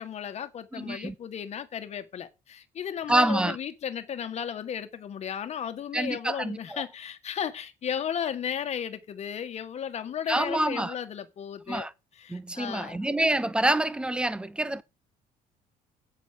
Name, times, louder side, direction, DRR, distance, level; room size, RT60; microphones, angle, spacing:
voice 1, 0.0-11.9 12.2-13.0, left 8 dB, 40° left, 1.6 m, -35 dB
voice 2, 0.7-1.1 3.1-3.6 5.9-6.8 10.3-11.0 11.7-11.9 12.3-14.8, right 1 dB, 5° right, 0.8 m, -27 dB
8.4 x 7.2 x 7.6 m
cardioid pair, 135°, 16 cm